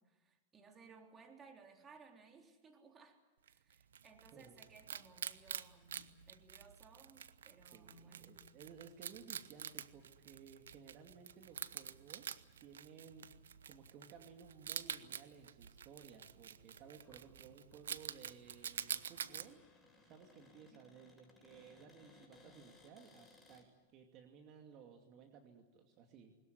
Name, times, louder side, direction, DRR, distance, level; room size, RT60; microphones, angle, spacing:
voice 1, 0.2-3.2 3.5-8.4 20.7-20.9, right 4 dB, 25° right, 4 dB, 3.6 m, -61 dB
Wild animals, 3.5-19.5, right 8 dB, 85° right, 0.9 m, -48 dB
voice 2, 7.6-13.3 13.7-19.6 20.0-23.7 23.9-26.3, right 6 dB, 45° right, 4 dB, 2.5 m, -58 dB
Cupboard open or close, 17.0-23.7, left 2 dB, 10° left, 7.0 m, -65 dB
21.5 x 20.0 x 9.6 m, 1.2 s
hypercardioid pair, 115°, 0 cm